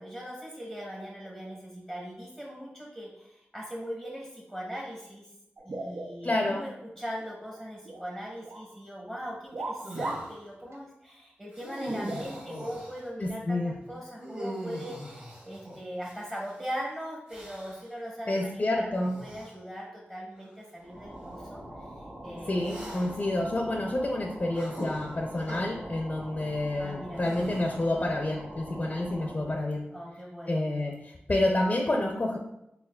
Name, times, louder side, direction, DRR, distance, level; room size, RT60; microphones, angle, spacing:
voice 1, 0.0-5.3 5.6-22.8 24.8-25.0 26.8-27.2 29.9-30.6, equal, 15° right, -3 dB, 0.8 m, -40 dB
sound 1, 5.6-6.6 7.0-8.1 8.4-8.7 9.5-10.4 10.7-10.8 11.8-12.7 13.6-13.7 14.6-14.8, right 2 dB, 90° right, 0.5 m, -38 dB
voice 2, 6.2-6.6 13.2-13.7 18.3-19.2 22.5-29.9 30.5-32.4, left 1 dB, 40° left, 1 dB, 0.4 m, -29 dB
sound 2, 9.8-10.3 11.5-13.1 14.2-16.5 17.3-17.9 19.0-19.5 20.4-20.5 22.6-23.3 24.5-25.6 27.2-28.0, equal, 35° right, 1.4 m, -41 dB
sound 3, 20.8-29.6, right 1 dB, 70° right, 1.4 m, -44 dB
4.6 x 3.3 x 2.2 m, 0.84 s
wide cardioid pair, 65°, 4 cm